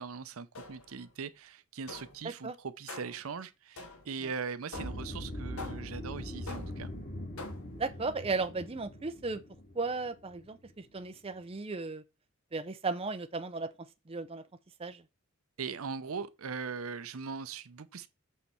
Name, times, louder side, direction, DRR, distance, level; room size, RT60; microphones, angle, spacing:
voice 1, 0.0-6.9 15.6-18.1, right 5 dB, 70° right, 0.6 m, -40 dB
sound 1, 0.5-1.1 1.9-2.3 2.9-3.3 3.8-4.2 4.7-5.1 5.6-6.0 6.5-6.9 7.4-7.8, left 3 dB, 75° left, 1.4 m, -46 dB
sound 2, 4.7-11.0, left 1 dB, 40° left, 2.4 m, -42 dB
voice 2, 7.8-9.4 9.8-12.0 12.5-13.7 14.1-14.4 14.8-15.0, right 3 dB, 25° right, 0.6 m, -35 dB
7.5 x 4.1 x 4.4 m
head